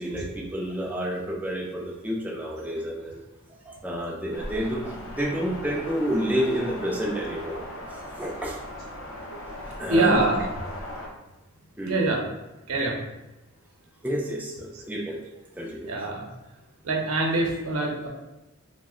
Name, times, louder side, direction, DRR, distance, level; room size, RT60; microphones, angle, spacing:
voice 1, 0.0-3.2 3.7-7.6 7.9-8.6 9.6-10.2 11.8-12.0 14.0-15.2 15.6-16.1, equal, 5° right, -3 dB, 0.3 m, -30 dB
sound 1, 4.3-11.1, left 1 dB, 60° left, 0.6 m, -38 dB
voice 2, 9.9-10.4 11.8-12.3 12.7-13.0 14.7-14.8 15.9-16.3 16.8-18.1, right 2 dB, 80° right, -1 dB, 0.7 m, -24 dB
2.8 x 2.1 x 3.6 m, 1.0 s
head